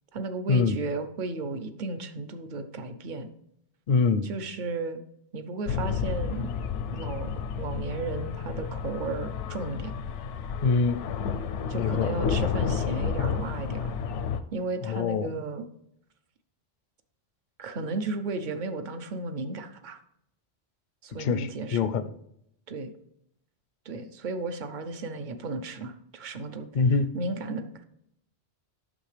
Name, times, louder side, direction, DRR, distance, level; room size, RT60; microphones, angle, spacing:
voice 1, 0.1-3.3 4.2-5.0 5.3-6.5 6.9-9.9 11.7-13.9 14.5-15.7 17.6-20.0 21.0-21.9 22.7-22.9 23.9-26.7 27.1-27.8, right 3 dB, 50° right, 9 dB, 0.7 m, -34 dB
voice 2, 3.9-4.3 10.6-11.0 11.7-12.1 14.8-15.3 21.2-22.1 26.7-27.1, left 4 dB, 55° left, 12 dB, 0.6 m, -24 dB
sound 1, 5.7-14.4, left 6 dB, 85° left, 0.9 m, -31 dB
8.7 x 6.4 x 3.3 m, 0.76 s
omnidirectional pair, 1.2 m